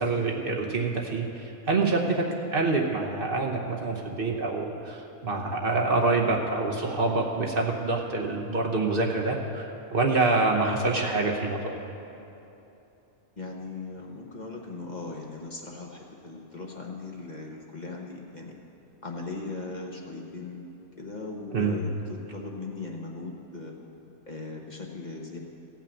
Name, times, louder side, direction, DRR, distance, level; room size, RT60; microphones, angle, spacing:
voice 1, 0.0-2.3 2.5-11.8 21.5-21.8, right 3 dB, 45° right, 0 dB, 1.1 m, -26 dB
voice 2, 13.4-18.5 19.0-20.7 21.0-23.8 24.3-25.4, left 3 dB, 35° left, -1 dB, 1.0 m, -38 dB
15.0 x 5.9 x 8.4 m, 2.9 s
omnidirectional pair, 1.4 m